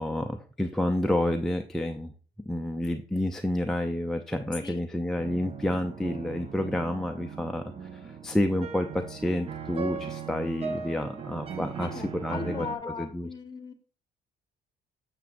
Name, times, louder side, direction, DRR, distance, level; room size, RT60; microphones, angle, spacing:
voice 1, 0.0-2.1 2.5-7.6 8.0-11.9 12.2-12.7 13.0-13.3, left 1 dB, 5° left, 4 dB, 0.4 m, -29 dB
sound 1, 5.2-12.8, right 6 dB, 35° right, 0.7 m, -39 dB
voice 2, 11.8-13.7, left 5 dB, 25° left, 7 dB, 1.1 m, -38 dB
7.2 x 6.9 x 2.5 m, 0.38 s
cardioid pair, 110°, 17 cm